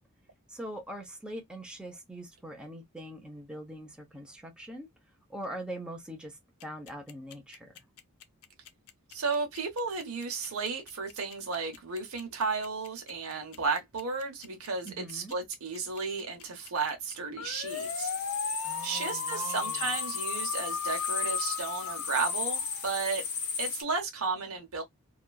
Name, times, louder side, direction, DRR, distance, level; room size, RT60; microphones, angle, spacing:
voice 1, 0.5-4.9 5.3-7.7 14.8-15.3 18.6-19.9, right 1 dB, 5° right, 0.7 m, -42 dB
sound 1, 6.6-23.1, left 6 dB, 75° left, 0.5 m, -38 dB
voice 2, 9.1-18.1 18.8-23.2 23.6-24.8, right 4 dB, 75° right, 0.9 m, -33 dB
sound 2, 17.6-23.8, left 6 dB, 50° left, 0.9 m, -35 dB
2.9 x 2.4 x 2.3 m
head